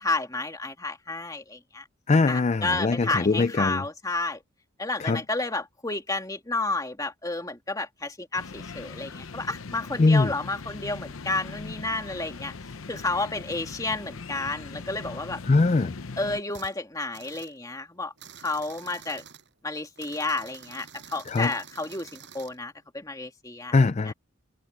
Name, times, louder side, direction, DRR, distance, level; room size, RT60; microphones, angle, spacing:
voice 1, 0.0-1.8 2.3-4.4 4.8-12.5 12.9-15.4 16.2-18.1 18.4-19.2 19.6-23.7 24.0-24.1, left 2 dB, 15° left, 2.4 m, -31 dB
voice 2, 2.1-3.8 5.0-5.2 10.0-10.3 15.5-15.9 21.3-21.5 23.7-24.1, left 3 dB, 35° left, 0.4 m, -21 dB
sound 1, 8.3-16.4, left 4 dB, 85° left, 0.9 m, -40 dB
sound 2, 16.5-16.7 17.1-17.6 18.2-19.5 20.0-22.6, right 7 dB, 60° right, 6.3 m, -48 dB
head